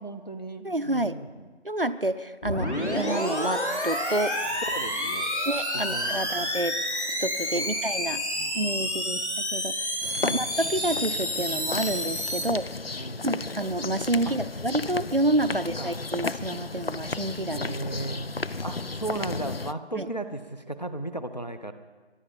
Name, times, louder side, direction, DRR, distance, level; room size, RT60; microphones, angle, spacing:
voice 1, 0.0-1.5 4.6-5.3 5.7-6.5 7.5-7.7 8.1-8.8 10.1-10.4 12.4-12.6 13.0-13.2 14.3-14.4 15.5-16.0 17.5-21.7, right 2 dB, 40° left, 9 dB, 0.9 m, -36 dB
voice 2, 0.6-1.1 1.6-4.3 5.5-6.7 7.2-8.2 8.5-9.2 9.5-9.7 10.2-12.6 13.2-17.7 20.0-20.1, right 1 dB, 55° right, 11 dB, 0.6 m, -28 dB
sound 1, 2.4-12.4, equal, 80° left, 3.9 m, -29 dB
sound 2, 10.0-19.7, left 3 dB, 60° left, 0.5 m, -34 dB
23.5 x 10.0 x 5.6 m, 1.3 s
figure-of-eight pair, 180°, 34 cm